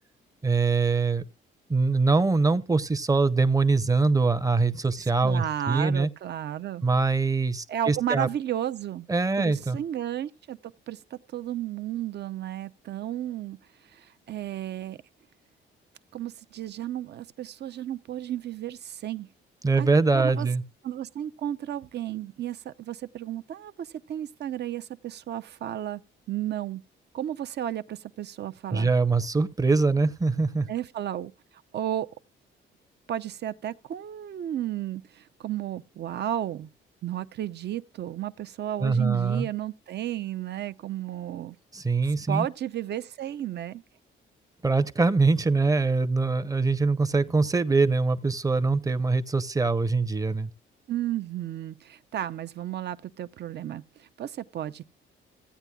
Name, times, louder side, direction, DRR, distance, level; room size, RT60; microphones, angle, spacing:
voice 1, 0.4-1.3 1.7-6.1 6.8-8.3 9.1-9.8 19.6-20.6 28.7-30.7 38.8-39.5 41.7-42.5 44.6-50.5, right 3 dB, 15° right, 0.7 m, -23 dB
voice 2, 5.2-6.8 7.7-9.1 9.4-13.6 13.9-15.0 16.1-19.3 19.8-19.9 20.1-20.5 20.8-26.0 26.3-26.8 27.1-28.9 30.7-31.3 31.7-32.1 33.1-36.7 37.0-41.6 42.3-43.8 50.9-54.9, right 11 dB, 60° right, 0.6 m, -33 dB
15.5 x 9.2 x 2.3 m
cardioid pair, 90°, 20 cm